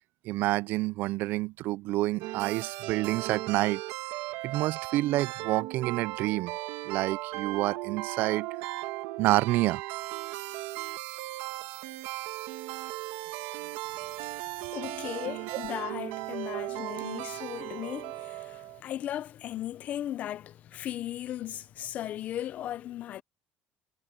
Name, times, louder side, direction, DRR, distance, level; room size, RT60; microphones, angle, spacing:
voice 1, 0.2-3.8 4.4-6.6 6.9-8.5 9.2-9.8 15.5-15.6, right 18 dB, 55° right, 0.3 m, -28 dB
sound 1, 2.2-18.8, right 18 dB, 85° right, 1.7 m, -37 dB
voice 2, 13.9-23.2, left 12 dB, 40° left, 0.6 m, -37 dB
cardioid pair, 165°, 4 cm